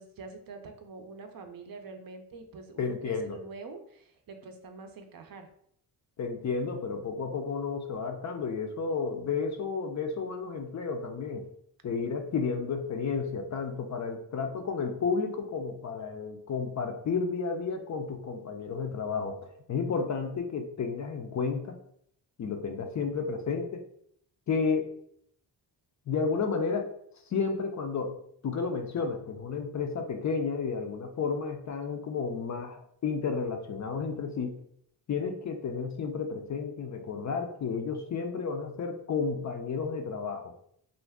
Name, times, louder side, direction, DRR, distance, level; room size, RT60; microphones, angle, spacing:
voice 1, 0.0-5.5, right 4 dB, 55° right, 6 dB, 0.5 m, -45 dB
voice 2, 2.8-3.4 6.2-11.5 11.8-21.7 22.4-23.8 24.5-24.9 26.1-26.9 27.3-28.2 28.4-34.5 35.1-40.5, left 5 dB, 45° left, 5 dB, 0.4 m, -32 dB
2.5 x 2.2 x 3.4 m, 0.68 s
cardioid pair, 80°, 44 cm